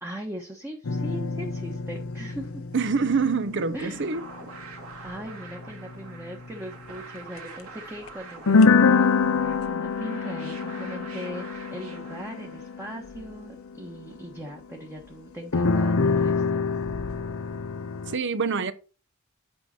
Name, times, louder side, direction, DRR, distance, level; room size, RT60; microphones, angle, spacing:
voice 1, 0.0-2.6 3.7-4.0 5.0-16.7, equal, 10° right, 1.3 m, -39 dB
sound 1, 0.8-6.6 7.2-7.4 8.1-8.2 8.5-14.5 15.5-18.2, left 4 dB, 70° left, 0.7 m, -25 dB
voice 2, 2.7-4.2 18.1-18.7, right 5 dB, 60° right, 0.9 m, -25 dB
sound 2, 3.6-12.9, right 4 dB, 90° right, 2.7 m, -45 dB
8.8 x 5.5 x 4.3 m
head